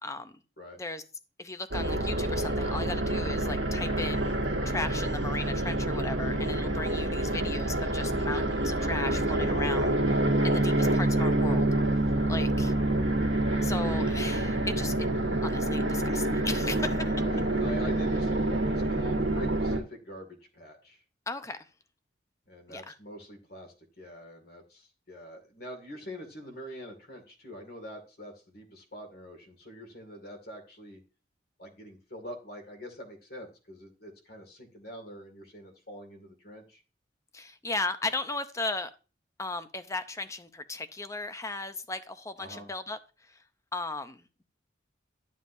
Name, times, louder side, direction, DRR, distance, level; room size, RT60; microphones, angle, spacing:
voice 1, 0.0-0.4 0.8-1.0 1.4-4.4 4.6-11.7 12.3-12.7 13.6-15.1 15.4-17.1 21.3-21.6 22.7-22.9 37.3-38.9 39.4-43.4 43.7-44.4, left 3 dB, 15° left, 0.6 m, -36 dB
sound 1, 1.7-19.8, right 1 dB, 85° right, 1.6 m, -27 dB
voice 2, 12.4-12.8 17.1-21.0 22.5-31.0 31.6-36.8 42.4-42.7, equal, 55° left, 2.2 m, -45 dB
12.0 x 7.3 x 2.7 m
head